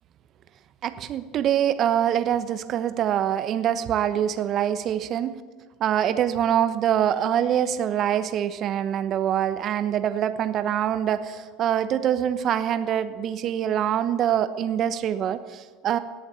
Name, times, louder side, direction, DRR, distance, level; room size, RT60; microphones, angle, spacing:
voice 1, 0.8-5.3 5.8-16.0, right 10 dB, 45° right, 11 dB, 1.0 m, -24 dB
17.5 x 7.2 x 8.6 m, 1.4 s
hypercardioid pair, 75°, 0 cm